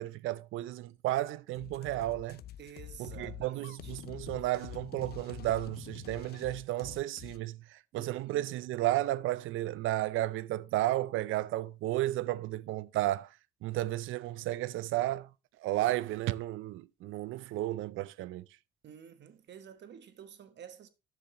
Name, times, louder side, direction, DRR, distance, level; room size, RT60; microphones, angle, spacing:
voice 1, 0.0-2.4 3.0-13.3 13.6-15.3 15.6-18.4, right 15 dB, 85° right, 0.5 m, -33 dB
sound 1, 1.5-7.4, left 11 dB, 55° left, 0.4 m, -47 dB
voice 2, 2.6-4.0 7.9-8.5 18.8-20.9, right 8 dB, 60° right, 1.2 m, -50 dB
10.5 x 6.8 x 2.9 m
cardioid pair, 90°, 20 cm